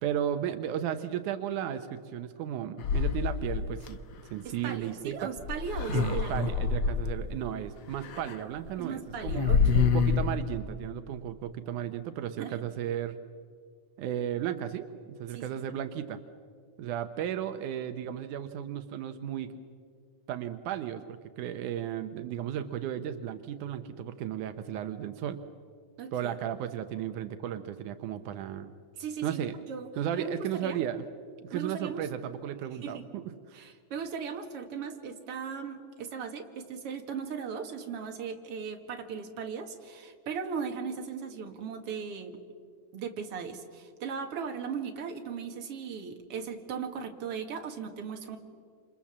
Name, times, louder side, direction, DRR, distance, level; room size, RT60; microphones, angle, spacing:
voice 1, 0.0-4.0 4.3-5.3 5.9-9.5 9.9-13.2 14.0-16.2 16.8-19.5 20.3-25.4 26.1-28.7 29.2-29.5 30.0-31.0 31.4-33.6, right 10 dB, 85° right, 9 dB, 2.4 m, -34 dB
sound 1, 2.8-3.9 5.4-7.2 8.0-8.3 8.7-8.8 9.1-10.3, left 5 dB, 55° left, 1.3 m, -26 dB
voice 2, 4.4-6.4 8.8-9.9 12.4-12.6 15.3-15.4 26.0-26.3 29.0-29.4 29.7-30.8 31.5-32.1 32.8-33.0 33.5-42.4 42.9-48.4, right 6 dB, 50° right, 4 dB, 2.8 m, -38 dB
28.0 x 28.0 x 7.4 m, 2.1 s
omnidirectional pair, 3.5 m